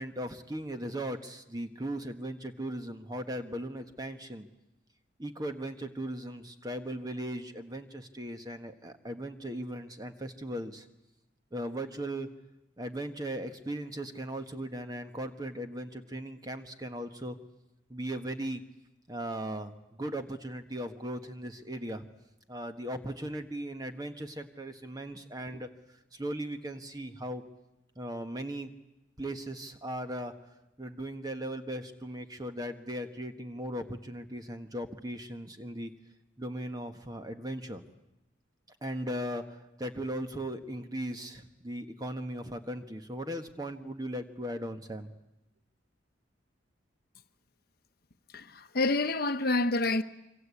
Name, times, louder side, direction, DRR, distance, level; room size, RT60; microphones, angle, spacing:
voice 1, 0.0-4.5 5.2-10.9 11.5-12.3 12.8-17.4 17.9-18.6 19.1-22.1 22.5-27.4 27.9-28.7 29.2-30.3 30.8-35.9 36.4-37.8 38.8-45.1, right 1 dB, 20° right, 1.4 m, -38 dB
voice 2, 48.3-50.0, left 2 dB, 50° left, 1.0 m, -28 dB
26.5 x 24.5 x 8.4 m
head